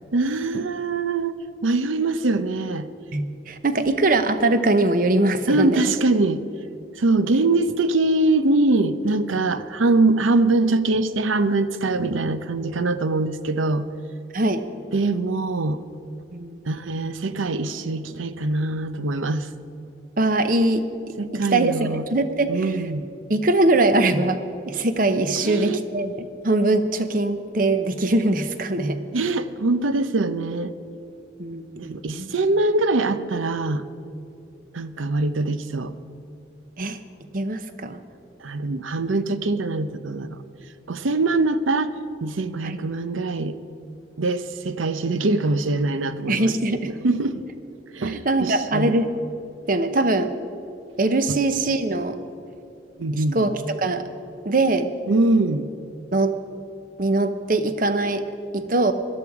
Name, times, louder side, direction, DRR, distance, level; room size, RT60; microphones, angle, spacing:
voice 1, 0.1-1.3 1.6-2.9 5.5-6.4 7.0-13.9 14.9-15.8 16.7-19.5 21.2-22.0 22.5-23.1 25.4-25.8 29.1-30.7 31.8-33.9 34.7-35.9 38.4-40.4 40.9-41.9 42.2-43.6 44.2-46.5 47.0-47.4 47.9-49.0 51.3-51.4 53.0-53.5 55.1-55.7, right 2 dB, 90° right, 12 dB, 0.7 m, -23 dB
voice 2, 3.1-5.9 14.3-14.6 16.3-16.6 20.2-22.8 23.3-24.4 24.7-29.0 31.4-32.3 36.8-37.0 37.3-38.0 42.6-42.8 46.3-46.9 48.1-49.1 49.7-50.3 51.0-52.2 53.1-54.1 54.4-54.9 56.1-56.4 57.0-58.9, right 2 dB, 45° right, 10 dB, 0.8 m, -22 dB
18.0 x 12.0 x 4.8 m, 2.7 s
head